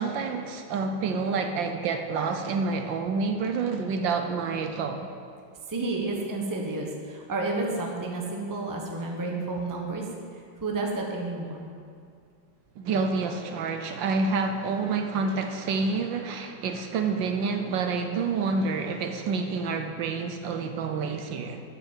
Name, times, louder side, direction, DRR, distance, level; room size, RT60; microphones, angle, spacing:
voice 1, 0.0-5.1 12.8-21.6, right 4 dB, 70° right, 6 dB, 1.3 m, -28 dB
voice 2, 5.7-10.0 10.6-11.7, right 2 dB, 15° right, 0 dB, 0.8 m, -31 dB
10.5 x 6.4 x 7.4 m, 2.2 s
omnidirectional pair, 2.2 m